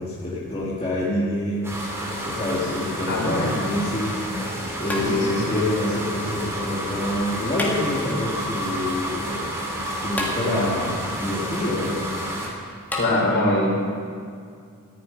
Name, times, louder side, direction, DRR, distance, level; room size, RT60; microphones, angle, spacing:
voice 1, 0.0-1.8 2.3-4.2 4.8-9.5 9.9-12.1, left 1 dB, 30° left, -7 dB, 2.2 m, -27 dB
sound 1, 1.6-12.5, equal, 10° right, 2.7 m, -30 dB
voice 2, 3.1-3.6 4.9-5.6 13.0-13.8, left 1 dB, 55° left, -4 dB, 4.6 m, -23 dB
sound 2, 4.9-5.6 7.5-8.3 10.2-10.9 12.9-13.1, left 1 dB, 10° left, 2.0 m, -31 dB
14.5 x 7.6 x 9.6 m, 2.3 s
head